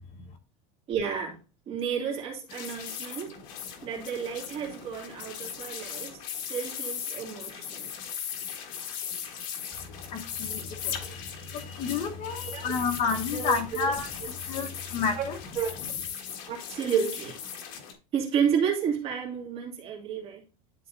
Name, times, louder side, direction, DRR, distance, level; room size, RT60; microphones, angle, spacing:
voice 1, 0.9-1.4 1.7-3.4 3.8-7.9 10.9-11.1 12.5-12.7 13.3-13.6 15.2-15.3 15.6-15.8 16.5-17.4 18.1-20.4, right 7 dB, 40° right, 2.4 m, -31 dB
sound 1, 2.5-17.9, left 8 dB, 55° left, 1.6 m, -38 dB
voice 2, 10.1-15.4 15.8-15.9, left 5 dB, 40° left, 1.4 m, -31 dB
11.5 x 4.1 x 2.7 m
supercardioid pair, 150°, 16 cm